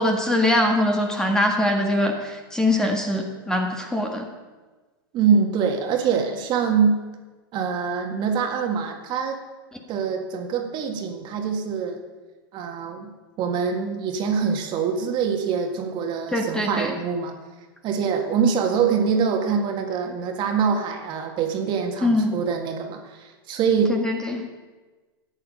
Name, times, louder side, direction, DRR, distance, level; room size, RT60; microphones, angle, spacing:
voice 1, 0.0-4.3 16.3-16.9 22.0-22.3 23.9-24.4, left 1 dB, 5° left, 3 dB, 1.7 m, -22 dB
voice 2, 5.1-7.0 7.5-9.4 9.9-12.0 12.5-13.1 13.4-17.3 17.8-24.0, right 6 dB, 40° right, 4 dB, 1.9 m, -24 dB
14.0 x 9.7 x 5.6 m, 1.3 s
hypercardioid pair, 120°, 12 cm